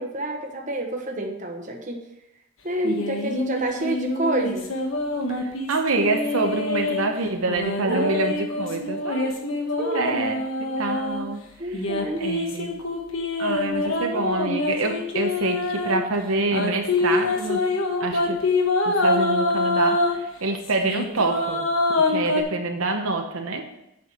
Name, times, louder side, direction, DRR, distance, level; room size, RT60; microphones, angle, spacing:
voice 1, 0.0-2.0 2.6-4.7 7.8-8.1 9.8-10.0 11.6-12.2, right 1 dB, 35° right, 2 dB, 1.3 m, -28 dB
sound 1, 2.8-7.0 7.5-11.2 11.7-16.0 16.5-20.2 20.6-22.4, left 2 dB, 65° left, 1.4 m, -25 dB
voice 2, 5.7-9.3 9.8-10.4 10.8-11.8 12.2-12.8 13.4-17.6 18.0-18.4 18.8-21.7 22.0-23.7, right 2 dB, 70° right, 3 dB, 1.0 m, -26 dB
8.5 x 6.3 x 6.3 m, 0.86 s
head